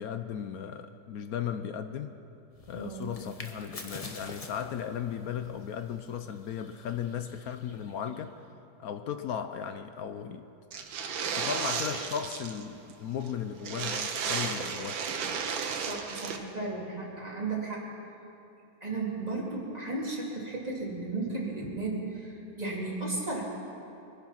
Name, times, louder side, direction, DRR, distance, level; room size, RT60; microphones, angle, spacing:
voice 1, 0.0-2.2 2.7-8.3 8.8-10.5 11.3-15.0, left 8 dB, 65° left, 9 dB, 0.9 m, -36 dB
sound 1, 2.5-8.3, left 3 dB, 30° left, 0.7 m, -48 dB
voice 2, 2.8-3.1 15.9-17.8 18.8-23.4, right 3 dB, 20° right, -4 dB, 2.9 m, -34 dB
sound 2, 10.7-12.6 12.9-13.0 13.2-13.3 13.6-16.4, right 6 dB, 90° right, 1.8 m, -33 dB
23.0 x 10.5 x 5.8 m, 2.7 s
omnidirectional pair, 2.0 m